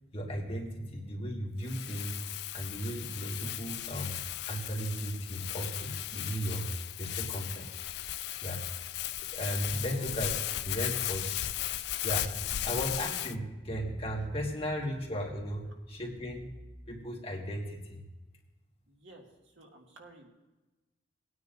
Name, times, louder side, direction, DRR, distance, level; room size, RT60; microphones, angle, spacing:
voice 1, 0.1-2.2 2.5-4.2 4.5-6.7 7.0-7.8 8.4-8.7 9.3-10.3 10.6-11.5 12.0-16.5 16.9-18.0, equal, 30° left, -1 dB, 1.6 m, -36 dB
Crumpling crinkling, 1.6-13.3, left 13 dB, 60° left, 0.3 m, -36 dB
voice 2, 18.9-20.3, right 1 dB, 85° right, 0 dB, 1.9 m, -52 dB
19.0 x 9.6 x 2.6 m, 1.1 s
head